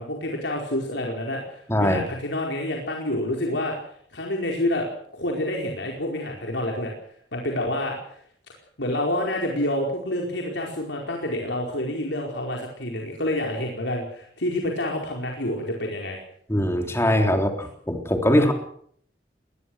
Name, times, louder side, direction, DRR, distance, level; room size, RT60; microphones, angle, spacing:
voice 1, 0.0-3.8 4.1-4.9 5.1-6.9 7.3-8.0 8.8-16.2 17.3-17.4 18.3-18.5, left 1 dB, 90° left, 0 dB, 4.8 m, -28 dB
voice 2, 1.7-2.0 16.5-18.5, left 1 dB, 15° left, 4 dB, 3.4 m, -21 dB
21.5 x 20.5 x 6.4 m, 0.63 s
head